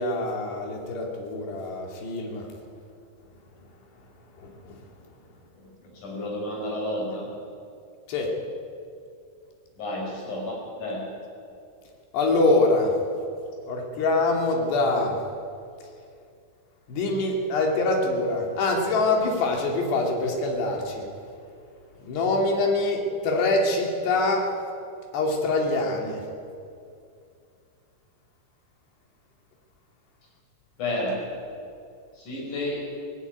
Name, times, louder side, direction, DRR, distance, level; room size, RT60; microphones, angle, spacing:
voice 1, 0.0-2.4 8.1-8.3 12.1-12.9 13.7-15.2 16.9-21.0 22.1-24.5 25.1-26.2, left 2 dB, 65° left, 1 dB, 4.6 m, -24 dB
voice 2, 5.5-7.3 9.8-11.1 30.8-31.3 32.2-32.9, left 1 dB, 40° left, -2 dB, 6.6 m, -31 dB
19.0 x 15.5 x 9.3 m, 2.5 s
omnidirectional pair, 5.3 m